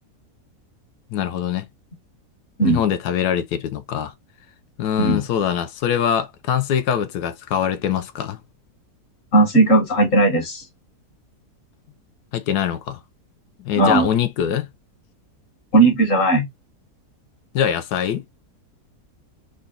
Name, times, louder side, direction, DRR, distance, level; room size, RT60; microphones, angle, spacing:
voice 1, 1.1-1.7 2.6-4.1 4.8-8.4 12.3-13.0 13.6-14.7 17.5-18.2, left 9 dB, 80° left, 1.1 m, -23 dB
voice 2, 9.3-10.6 13.8-14.1 15.7-16.4, right 2 dB, 50° left, 1.8 m, -16 dB
3.9 x 2.2 x 3.7 m
omnidirectional pair, 1.7 m